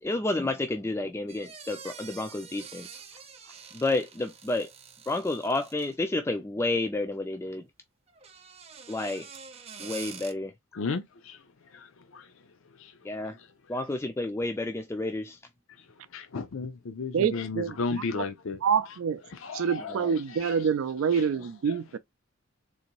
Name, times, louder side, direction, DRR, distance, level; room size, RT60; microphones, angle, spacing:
voice 1, 0.0-2.9 3.7-4.7 5.1-7.6 8.9-9.3 9.8-10.5 13.0-13.4 13.7-15.4 19.9-20.2, left 2 dB, 15° left, 0.3 m, -30 dB
sound 1, 1.3-6.1 8.1-10.3, right 6 dB, 30° right, 0.6 m, -46 dB
voice 2, 10.7-13.5 15.7-19.0 19.3-20.7 21.1-21.3 21.7-22.0, left 4 dB, 75° left, 0.5 m, -36 dB
voice 3, 17.1-17.7 18.6-19.2 19.5-22.0, right 7 dB, 85° right, 0.4 m, -26 dB
3.9 x 2.6 x 2.9 m
head